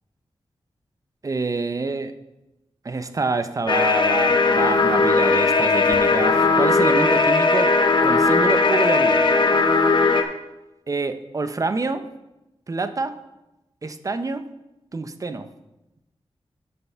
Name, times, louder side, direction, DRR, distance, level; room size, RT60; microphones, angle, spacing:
voice 1, 1.2-2.1 2.8-7.7 8.0-9.3 10.9-12.0 12.7-13.2 13.8-14.4 14.9-15.5, right 3 dB, 35° right, 10 dB, 0.5 m, -26 dB
sound 1, 3.7-10.2, left 3 dB, 50° left, 0.8 m, -18 dB
6.8 x 6.7 x 5.6 m, 0.97 s
wide cardioid pair, 135°, 10 cm